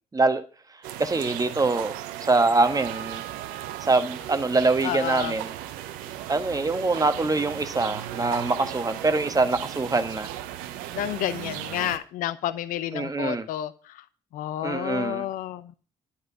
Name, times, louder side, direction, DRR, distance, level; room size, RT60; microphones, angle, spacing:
voice 1, 0.1-0.4 1.0-1.9 2.2-3.2 3.8-5.5 6.3-10.3 12.9-13.5 14.6-15.2, right 3 dB, 25° right, 1.3 m, -24 dB
sound 1, 0.8-12.0, right 12 dB, 75° right, 0.7 m, -36 dB
voice 2, 4.8-5.3 10.9-14.0 14.3-15.7, left 12 dB, 65° left, 0.7 m, -30 dB
11.0 x 5.8 x 7.1 m
hypercardioid pair, 45°, 15 cm